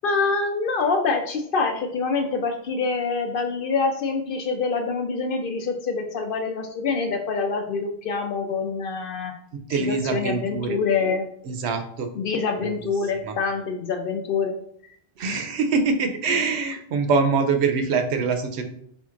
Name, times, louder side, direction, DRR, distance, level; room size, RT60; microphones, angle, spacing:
voice 1, 0.0-9.3 9.7-11.3 12.2-14.6, left 4 dB, 60° left, 5 dB, 0.7 m, -25 dB
voice 2, 9.5-10.8 11.4-12.1 12.6-12.9 13.2-13.4 15.2-18.6, right 4 dB, 75° right, 6 dB, 0.8 m, -24 dB
4.4 x 3.8 x 2.4 m, 0.65 s
omnidirectional pair, 1.1 m